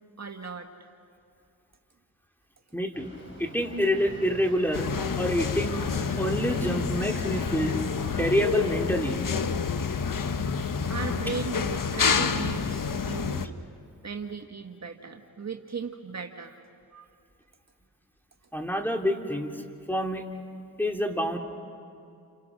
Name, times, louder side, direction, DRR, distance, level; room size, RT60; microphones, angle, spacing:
voice 1, 0.2-0.9 10.9-13.5 14.0-16.6 16.9-17.1, right 5 dB, 40° right, 4 dB, 1.6 m, -37 dB
voice 2, 2.7-3.1 3.4-4.9 5.2-7.7 8.2-9.2 18.5-19.5 19.9-20.2 20.8-21.4, equal, 5° left, 3 dB, 3.2 m, -27 dB
sound 1, 2.9-11.6, equal, 30° left, 6.3 m, -45 dB
sound 2, 4.7-13.5, left 5 dB, 55° left, 1.3 m, -28 dB
30.0 x 26.5 x 6.2 m, 2.5 s
supercardioid pair, 40°, 39 cm